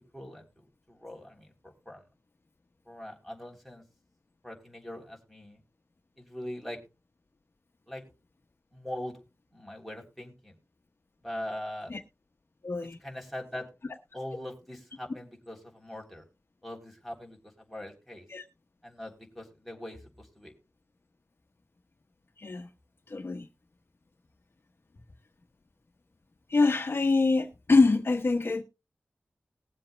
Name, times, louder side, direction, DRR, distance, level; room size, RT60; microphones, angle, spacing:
voice 1, 0.1-2.0 2.8-3.8 4.4-5.6 6.2-6.8 7.9-8.0 8.7-9.2 9.5-10.5 11.2-11.9 13.0-13.7 14.1-16.2 16.6-18.3 18.8-20.5, left 1 dB, ahead, 3.4 m, -41 dB
voice 2, 12.6-13.0 18.3-18.4 22.4-22.7 23.1-23.5 26.5-28.6, left 3 dB, 55° left, 1.1 m, -25 dB
20.0 x 7.6 x 2.2 m
wide cardioid pair, 65°, 5 cm